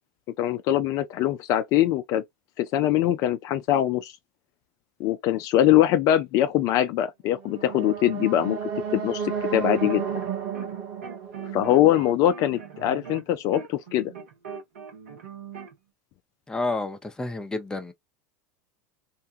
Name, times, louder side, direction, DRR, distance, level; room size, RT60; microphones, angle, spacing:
voice 1, 0.4-2.2 2.6-4.1 5.0-8.6 8.9-10.0 11.5-14.1, left 12 dB, 50° left, 0.4 m, -22 dB
sound 1, 7.3-12.4, right 7 dB, 55° right, 1.2 m, -32 dB
sound 2, 9.6-10.8 11.0-15.7, right 7 dB, 75° right, 1.0 m, -40 dB
voice 2, 16.5-17.9, left 2 dB, 10° left, 0.6 m, -30 dB
2.6 x 2.2 x 2.7 m
hypercardioid pair, 85°, 7 cm